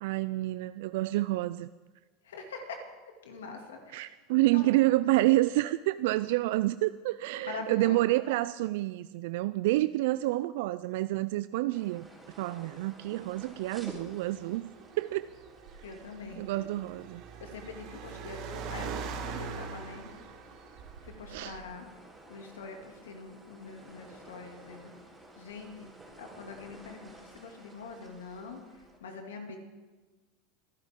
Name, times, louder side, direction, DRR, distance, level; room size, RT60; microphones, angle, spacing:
voice 1, 0.0-1.7 3.9-12.1 12.4-14.7 15.0-15.3 16.4-17.2 21.3-21.6, right 18 dB, 70° right, 0.3 m, -28 dB
voice 2, 2.2-2.8 3.2-4.1 4.5-4.7 7.4-8.0 15.8-16.7 17.4-20.1 21.0-21.9 22.3-24.9 25.3-29.6, left 4 dB, 85° left, 2.4 m, -44 dB
sound 1, 11.7-29.0, right 1 dB, 10° right, 3.9 m, -53 dB
Car, 13.9-21.7, right 5 dB, 55° right, 1.8 m, -42 dB
23.5 x 10.5 x 3.7 m
hypercardioid pair, 100°, 0 cm